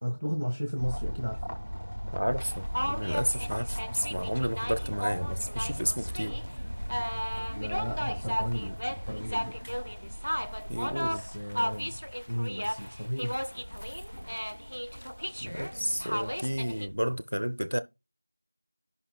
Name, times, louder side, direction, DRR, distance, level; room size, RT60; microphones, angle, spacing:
voice 1, 0.0-1.4 7.5-9.5 11.0-11.9 12.3-13.4 15.2-15.3, equal, 35° left, 1.5 m, -34 dB
sound 1, 0.8-17.2, equal, 15° left, 1.3 m, -39 dB
voice 2, 2.1-6.4 10.7-11.2 15.4-17.8, equal, 45° right, 0.6 m, -31 dB
sound 2, 2.4-16.9, equal, 80° left, 0.7 m, -35 dB
14.0 x 5.8 x 2.3 m
figure-of-eight pair, 180°, 0 cm